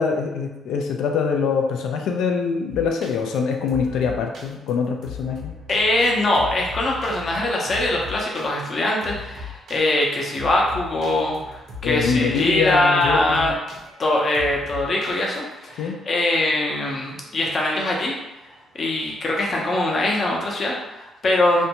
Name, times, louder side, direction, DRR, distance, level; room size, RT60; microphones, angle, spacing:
voice 1, 0.0-5.5 11.8-13.6 15.8-16.0, left 5 dB, 85° left, 3 dB, 0.3 m, -24 dB
sound 1, 2.7-20.1, left 4 dB, 75° right, 0.7 m, -40 dB
voice 2, 5.7-13.5 14.0-18.1 18.7-21.7, left 1 dB, 45° left, -2 dB, 0.6 m, -22 dB
2.5 x 2.2 x 2.8 m, 0.98 s
cardioid pair, 90°, 0 cm